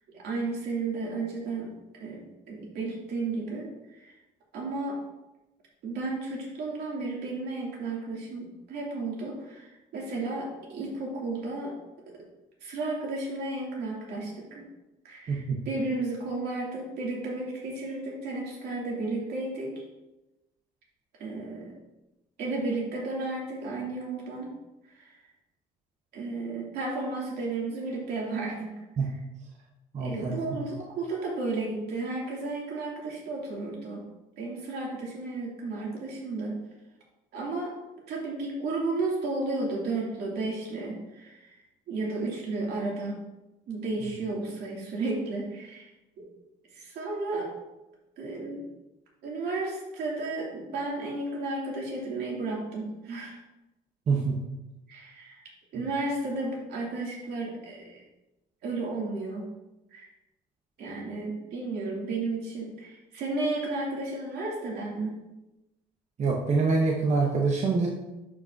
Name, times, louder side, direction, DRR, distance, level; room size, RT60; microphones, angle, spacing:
voice 1, 0.1-1.7 2.0-3.7 4.0-4.1 4.5-5.0 5.8-11.8 12.6-14.6 15.0-19.7 21.2-21.7 22.4-24.5 24.9-25.2 26.1-28.7 30.0-34.0 34.4-36.5 37.3-37.7 38.1-41.6 41.9-43.2 43.7-45.9 46.2-46.3 46.7-47.5 48.2-48.6 49.2-53.4 54.9-55.4 55.7-58.0 58.6-59.4 59.9-60.1 60.8-65.2, right 3 dB, 75° right, -3 dB, 2.7 m, -33 dB
voice 2, 15.3-15.6 29.0-29.1 29.9-30.6 54.1-54.4 66.2-67.9, right 4 dB, 40° right, -1 dB, 1.0 m, -25 dB
11.0 x 5.1 x 2.7 m, 1.0 s
cardioid pair, 110°, 17 cm